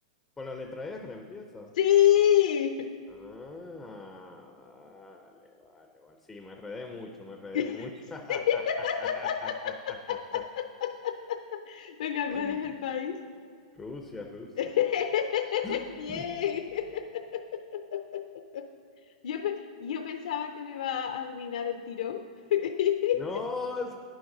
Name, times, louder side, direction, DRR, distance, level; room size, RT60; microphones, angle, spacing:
voice 1, 0.4-1.7 3.1-8.6 9.0-10.2 12.3-12.6 13.7-14.7 15.6-15.8 16.1-16.3 23.1-24.0, left 3 dB, 5° left, 3 dB, 0.4 m, -41 dB
voice 2, 1.8-2.9 7.5-7.8 8.3-13.2 14.6-18.7 19.2-22.2 22.5-23.2, left 10 dB, 65° left, 6 dB, 0.5 m, -28 dB
9.7 x 6.4 x 5.9 m, 2.4 s
supercardioid pair, 175°, 4 cm